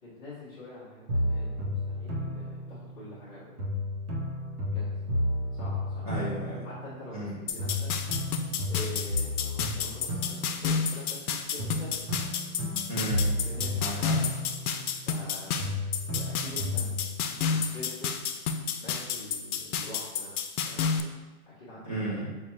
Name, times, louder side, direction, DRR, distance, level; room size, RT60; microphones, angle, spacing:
voice 1, 0.0-3.6 4.7-5.1 5.5-6.1 6.6-7.9 8.7-12.1 13.4-14.1 15.0-15.7 16.1-18.1 18.7-20.4 20.6-21.1 21.4-21.9, left 1 dB, 10° left, -12 dB, 0.7 m, -45 dB
sound 1, 1.1-3.2 3.6-7.3 7.6-11.2 11.6-15.3 15.6-17.2, left 1 dB, 90° right, 1.2 m, -32 dB
voice 2, 6.0-6.7 7.1-7.3 12.9-13.3 13.8-14.2 21.8-22.3, right 1 dB, 25° right, -9 dB, 0.5 m, -34 dB
sound 2, 7.5-21.0, left 6 dB, 80° left, 0.5 m, -31 dB
4.9 x 2.3 x 3.0 m, 1.2 s
hypercardioid pair, 165°, 44 cm